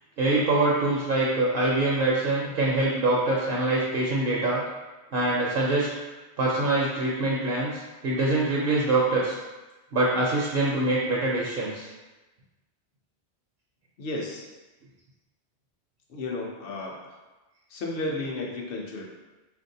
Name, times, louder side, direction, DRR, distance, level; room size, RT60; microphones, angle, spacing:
voice 1, 0.2-4.6 5.1-5.9 6.4-9.4 9.9-11.9, right 2 dB, 60° right, -4 dB, 0.7 m, -24 dB
voice 2, 14.0-14.5 16.1-17.2 17.7-19.1, left 2 dB, 60° left, -1 dB, 0.8 m, -33 dB
3.4 x 2.5 x 2.6 m, 1.1 s
omnidirectional pair, 1.1 m